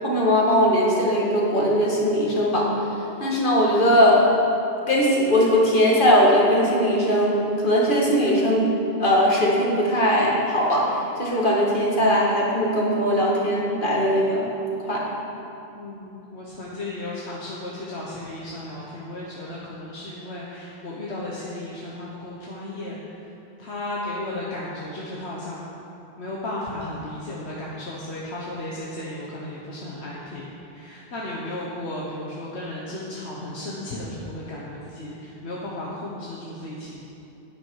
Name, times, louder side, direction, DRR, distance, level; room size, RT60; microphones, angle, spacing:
voice 1, 0.0-2.7 3.2-4.2 4.9-8.7 9.0-10.9 11.2-14.5 14.8-15.0, equal, 50° left, -4 dB, 2.1 m, -20 dB
voice 2, 15.7-23.3 23.6-25.6 26.2-30.4 30.7-37.0, left 1 dB, 85° left, -5 dB, 1.5 m, -34 dB
11.5 x 9.6 x 4.7 m, 2.8 s
omnidirectional pair, 1.1 m